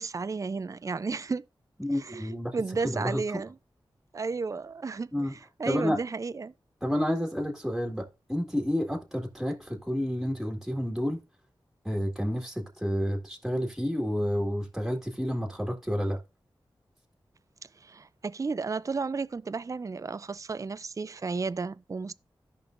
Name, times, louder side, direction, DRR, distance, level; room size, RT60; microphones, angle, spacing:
voice 1, 0.0-1.4 1.9-3.6 4.1-6.5 17.7-22.1, right 4 dB, 35° right, 0.4 m, -33 dB
voice 2, 1.8-2.6 2.8-3.4 5.1-5.3 5.6-6.0 6.8-11.2 11.8-16.2, equal, ahead, 1.9 m, -30 dB
14.0 x 5.2 x 2.5 m
cardioid pair, 45°, 9 cm